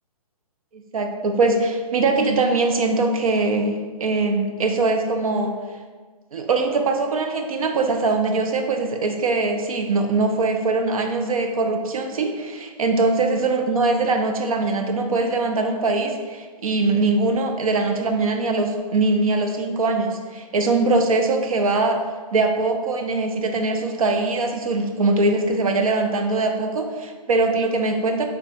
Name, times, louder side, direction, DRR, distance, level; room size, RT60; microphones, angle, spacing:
voice 1, 0.9-5.5 6.3-22.0 22.3-28.3, right 3 dB, 65° right, 4 dB, 0.6 m, -22 dB
5.1 x 3.4 x 2.6 m, 1.5 s
hypercardioid pair, 165°, 20 cm